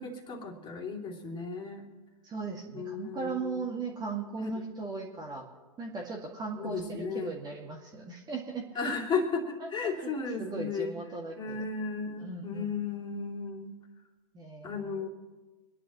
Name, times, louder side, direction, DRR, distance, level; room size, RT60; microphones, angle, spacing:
voice 1, 0.0-1.8 2.7-3.7 4.6-4.7 6.5-7.3 8.7-11.0 11.4-13.7 14.6-15.1, left 4 dB, 25° left, 1 dB, 2.9 m, -34 dB
voice 2, 2.2-5.4 5.8-8.9 9.6-10.1 10.4-11.7 12.2-12.7 14.3-15.0, right 4 dB, 20° right, 0 dB, 2.2 m, -38 dB
26.5 x 11.0 x 3.1 m, 1.3 s
hypercardioid pair, 115°, 19 cm